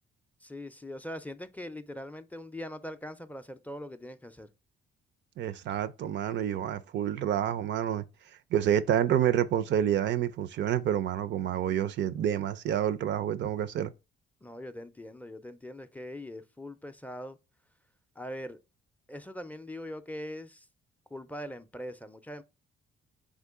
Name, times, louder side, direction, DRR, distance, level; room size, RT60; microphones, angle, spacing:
voice 1, 0.4-4.5 14.4-17.4 18.2-18.6 19.1-20.7 21.1-22.4, left 1 dB, 10° left, 0.4 m, -41 dB
voice 2, 5.4-8.0 8.5-13.9, right 10 dB, 65° right, 0.4 m, -28 dB
3.7 x 3.6 x 3.5 m
cardioid pair, 90°, 20 cm